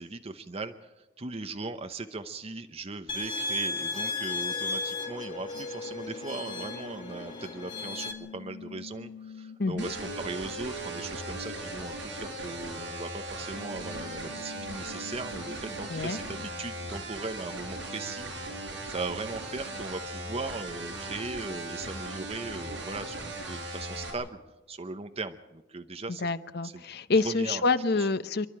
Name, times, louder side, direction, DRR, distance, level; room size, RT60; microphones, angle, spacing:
voice 1, 0.0-24.4 24.7-26.3 26.6-26.8 27.2-27.6 28.0-28.1, right 3 dB, 30° right, 8 dB, 0.9 m, -38 dB
sound 1, 3.1-8.1, left 3 dB, 25° left, 2.7 m, -35 dB
sound 2, 4.5-16.5, left 2 dB, 80° left, 2.3 m, -45 dB
voice 2, 9.6-9.9 15.9-16.2 26.2-28.5, left 3 dB, 55° left, 12 dB, 0.9 m, -27 dB
sound 3, 9.8-24.1, right 2 dB, 65° right, 7.1 m, -38 dB
28.0 x 11.5 x 8.7 m, 1.0 s
head